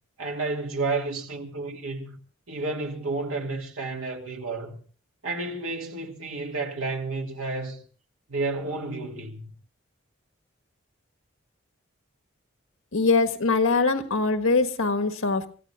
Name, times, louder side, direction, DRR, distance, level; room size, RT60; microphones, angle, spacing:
voice 1, 0.2-2.2 2.5-4.8 5.2-7.8 8.3-9.5, right 3 dB, 85° right, 2.6 m, -31 dB
voice 2, 12.9-15.5, left 3 dB, 85° left, 1.5 m, -22 dB
29.5 x 14.5 x 2.4 m
head